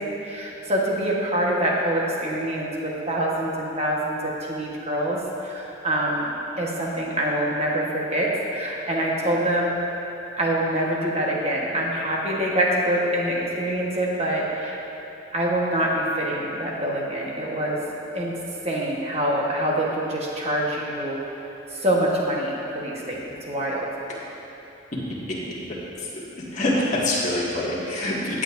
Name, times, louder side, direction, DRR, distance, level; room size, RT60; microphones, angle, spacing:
voice 1, 0.0-9.8 10.4-14.8 15.3-17.8 18.1-18.3 18.6-21.2 21.7-23.9, right 1 dB, 30° right, -3 dB, 1.3 m, -25 dB
voice 2, 26.5-28.4, left 1 dB, 35° left, -7 dB, 1.9 m, -25 dB
15.5 x 8.6 x 2.6 m, 3.0 s
head